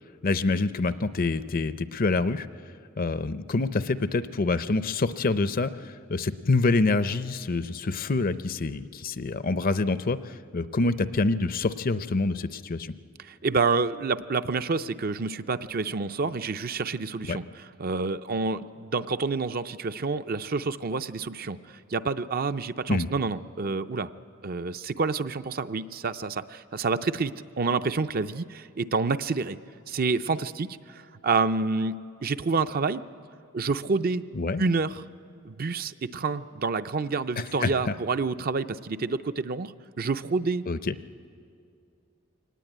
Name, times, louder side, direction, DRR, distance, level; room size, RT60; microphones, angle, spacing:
voice 1, 0.2-2.5 3.0-12.9 17.3-17.4 22.9-23.1 34.3-34.6 37.6-37.9 40.7-41.0, left 3 dB, 45° left, 13 dB, 0.6 m, -26 dB
voice 2, 13.2-24.1 24.4-29.6 29.9-33.0 33.5-34.2 34.6-35.0 35.4-40.6, right 4 dB, 50° right, 10 dB, 0.5 m, -28 dB
23.0 x 18.5 x 9.2 m, 2.4 s
head